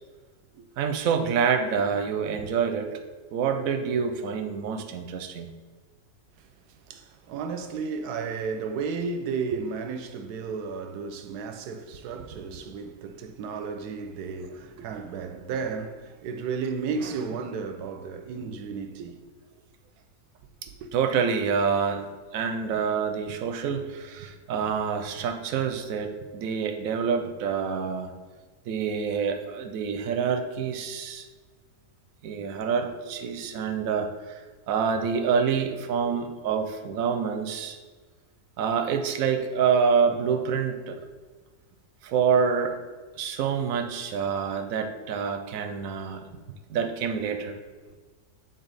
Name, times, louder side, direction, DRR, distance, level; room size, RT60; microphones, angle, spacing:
voice 1, 0.8-2.9 3.3-5.5 20.9-22.1 22.3-28.1 28.7-31.2 32.2-34.1 34.7-37.8 38.6-41.0 42.0-42.8 43.2-46.3 46.7-47.5, right 6 dB, 70° right, 1.0 m, -27 dB
voice 2, 6.9-19.2 20.8-20.9, right 5 dB, 85° right, 1.1 m, -33 dB
8.1 x 3.8 x 4.0 m
omnidirectional pair, 1.7 m